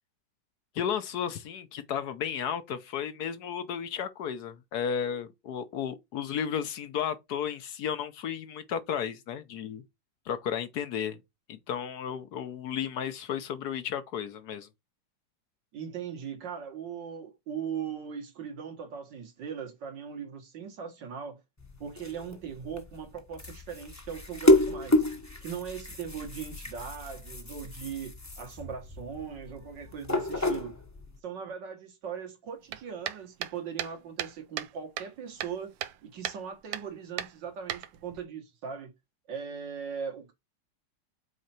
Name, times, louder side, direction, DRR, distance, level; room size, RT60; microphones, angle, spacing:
voice 1, 0.7-9.8 10.3-11.2 11.5-14.7, left 8 dB, 65° left, 1.2 m, -33 dB
voice 2, 15.7-21.4 21.8-25.0 25.4-30.7 31.2-35.7 36.0-38.9 39.3-40.3, right 7 dB, 75° right, 2.2 m, -39 dB
sound 1, 21.6-31.2, left 1 dB, 15° left, 0.7 m, -30 dB
sound 2, 32.7-34.7 35.0-36.0 36.2-36.4 36.7-36.9 37.2-38.2, right 11 dB, 90° right, 1.4 m, -36 dB
6.5 x 4.4 x 4.4 m
omnidirectional pair, 2.0 m